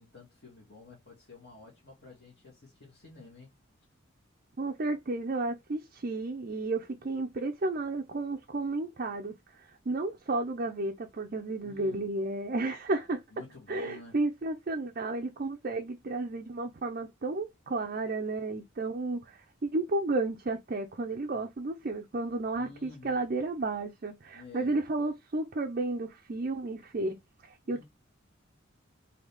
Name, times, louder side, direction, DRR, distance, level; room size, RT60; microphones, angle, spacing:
voice 1, 0.0-3.5 11.6-12.0 13.3-14.2 22.5-23.2 24.3-24.8 27.6-27.8, left 3 dB, 55° left, 1.8 m, -51 dB
voice 2, 4.6-9.3 9.9-13.2 13.7-27.2 27.4-27.8, right 2 dB, 45° right, 0.5 m, -32 dB
3.9 x 2.8 x 3.3 m
head